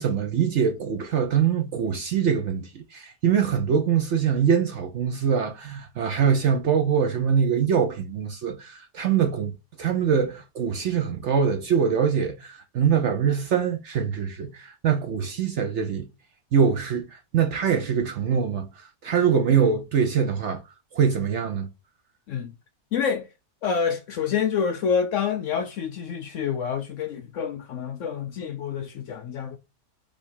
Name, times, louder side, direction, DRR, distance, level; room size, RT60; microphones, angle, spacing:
voice 1, 0.0-16.1 16.5-20.6 20.9-21.7, right 7 dB, 60° right, 0.8 m, -23 dB
voice 2, 22.9-23.3 23.6-29.6, left 7 dB, 65° left, 0.8 m, -27 dB
3.4 x 2.9 x 4.3 m
omnidirectional pair, 1.7 m